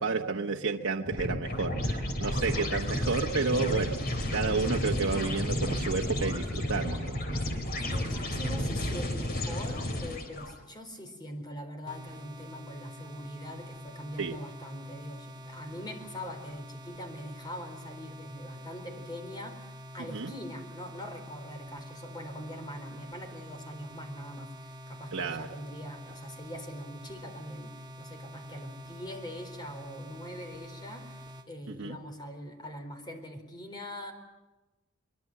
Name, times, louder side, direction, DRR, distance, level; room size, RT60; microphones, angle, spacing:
voice 1, 0.0-4.0 4.3-7.2 14.2-14.3 20.0-20.3 25.1-25.5 31.7-32.0, right 4 dB, 70° right, 1 dB, 1.2 m, -31 dB
sound 1, 1.1-10.5, left 1 dB, 45° left, 3.4 m, -32 dB
voice 2, 4.9-5.3 7.9-34.1, equal, 20° left, 5 dB, 4.1 m, -43 dB
sound 2, 11.9-31.5, equal, 20° right, 1.5 m, -46 dB
23.5 x 23.0 x 7.8 m, 1.1 s
head